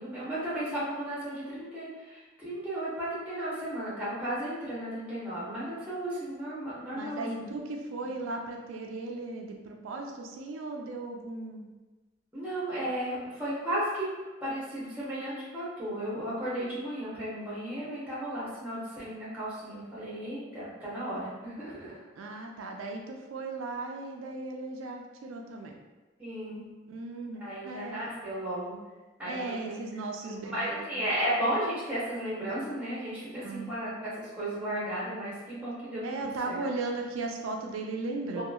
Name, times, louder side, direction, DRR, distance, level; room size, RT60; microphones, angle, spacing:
voice 1, 0.0-7.4 12.3-14.1 14.4-21.9 26.2-26.6 27.4-28.8 29.2-29.8 30.2-36.6 38.4-38.5, right 1 dB, 10° right, -9 dB, 0.7 m, -34 dB
voice 2, 6.9-11.7 22.2-25.8 26.9-28.0 29.2-31.1 33.4-33.7 36.0-38.4, right 3 dB, 80° right, 2 dB, 0.3 m, -37 dB
2.8 x 2.3 x 2.3 m, 1.2 s
head